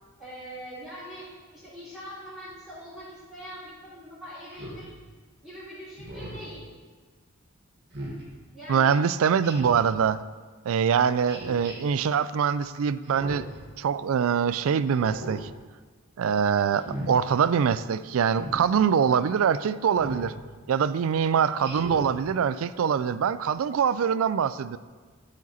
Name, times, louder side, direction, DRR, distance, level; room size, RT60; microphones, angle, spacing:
voice 1, 0.2-1.3 1.5-4.9 5.4-6.7 8.5-9.0, equal, 5° right, -16 dB, 3.1 m, -42 dB
Speech synthesizer, 4.5-4.9 6.0-6.5 7.9-8.2 9.4-9.9 11.3-11.7 13.0-13.6 14.9-15.4 16.7-17.1 18.3-18.6 20.0-20.3 21.6-22.1, right 1 dB, 50° right, 1.8 m, -37 dB
voice 2, 8.7-10.2 10.7-13.5 13.8-15.5 16.2-20.3 20.7-24.8, right 7 dB, 70° right, 15 dB, 0.3 m, -24 dB
13.5 x 5.0 x 4.1 m, 1.4 s
head